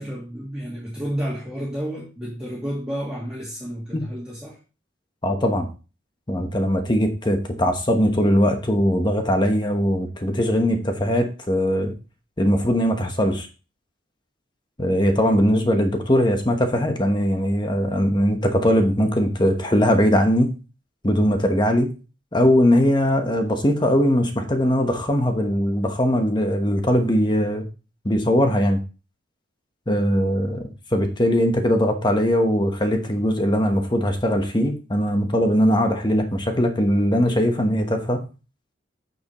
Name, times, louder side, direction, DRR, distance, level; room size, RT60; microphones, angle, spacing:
voice 1, 0.0-4.6, equal, 5° right, -8 dB, 2.5 m, -31 dB
voice 2, 5.2-5.7 6.3-11.9 12.4-13.5 14.8-20.5 21.0-21.9 22.3-27.7 28.0-28.8 29.9-38.2, equal, 25° left, 5 dB, 1.0 m, -20 dB
9.2 x 6.7 x 3.0 m, 0.33 s
head